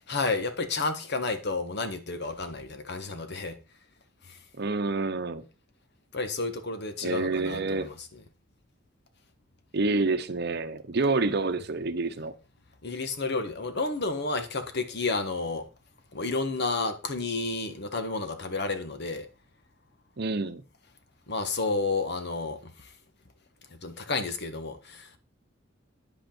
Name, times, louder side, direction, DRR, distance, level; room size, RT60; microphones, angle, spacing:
voice 1, 0.1-3.6 4.3-4.4 6.1-7.9 12.8-15.6 16.1-19.3 21.3-22.9 23.7-25.2, left 3 dB, 55° left, 1.4 m, -31 dB
voice 2, 4.6-5.4 7.0-7.9 9.7-12.3 20.2-20.6, right 3 dB, 55° right, 0.8 m, -28 dB
10.0 x 8.0 x 4.4 m
head